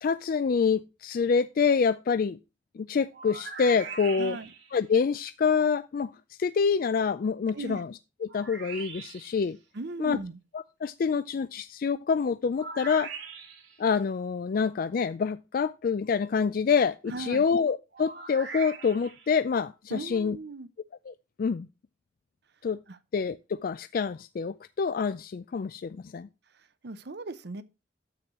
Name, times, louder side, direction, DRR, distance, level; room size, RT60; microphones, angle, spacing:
voice 1, 0.0-2.4 2.8-4.4 4.7-6.1 6.4-7.9 8.2-9.6 10.0-10.2 10.5-13.1 13.8-20.4 21.1-21.7 22.6-22.8 23.1-26.3, left 5 dB, 50° left, 0.3 m, -27 dB
sound 1, 3.1-4.8 8.3-9.5 12.6-13.8 17.9-19.3, right 5 dB, 85° right, 2.9 m, -41 dB
voice 2, 4.2-4.5 7.5-7.8 9.7-10.4 17.1-17.4 19.9-20.7 22.9-23.0 26.8-27.6, right 3 dB, 65° right, 0.8 m, -37 dB
9.8 x 7.7 x 3.0 m
head